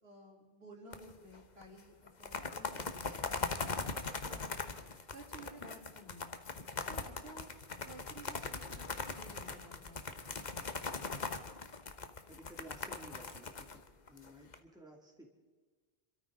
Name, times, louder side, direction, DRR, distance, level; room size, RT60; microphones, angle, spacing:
voice 1, 0.0-3.4 3.9-4.7 5.1-6.3 6.9-7.5 7.8-10.0, right 2 dB, 70° right, -2 dB, 4.1 m, -54 dB
sound 1, 0.9-1.4 1.6-1.7 2.1-14.6, left 4 dB, 45° left, 1.2 m, -40 dB
voice 2, 12.3-15.3, right 1 dB, 5° right, -1 dB, 2.5 m, -55 dB
27.5 x 13.5 x 3.9 m, 1.4 s
omnidirectional pair, 1.1 m